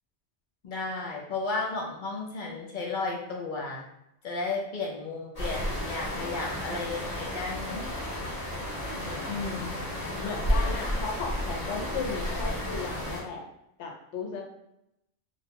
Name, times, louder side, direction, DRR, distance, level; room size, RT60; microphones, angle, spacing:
voice 1, 0.6-3.8 4.2-7.9 8.9-9.4, left 3 dB, 55° left, -1 dB, 0.6 m, -34 dB
sound 1, 5.4-13.2, equal, 35° left, 1.0 m, -32 dB
voice 2, 9.2-13.4 13.8-14.4, left 5 dB, 90° left, 0 dB, 0.9 m, -35 dB
2.4 x 2.2 x 2.8 m, 0.80 s
omnidirectional pair, 1.2 m